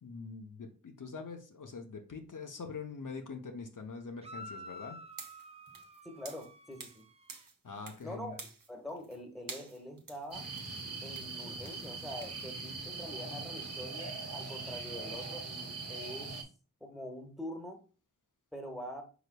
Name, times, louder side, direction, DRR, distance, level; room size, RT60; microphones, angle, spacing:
voice 1, 0.0-5.0 7.6-8.4, left 4 dB, 70° left, 4 dB, 0.7 m, -44 dB
sound 1, 4.2-7.5, equal, 20° right, 0.4 m, -50 dB
sound 2, 5.1-7.0 7.3-8.1 8.3-9.2 9.5-12.4, right 4 dB, 80° right, 0.8 m, -49 dB
voice 2, 6.0-7.1 8.0-8.4 8.7-10.5 11.0-16.3 16.8-17.8 18.5-19.0, equal, ahead, 4 dB, 1.0 m, -44 dB
sound 3, 10.3-16.4, right 3 dB, 50° right, 0.8 m, -41 dB
4.9 x 3.9 x 2.2 m, 0.36 s
wide cardioid pair, 40°, 33 cm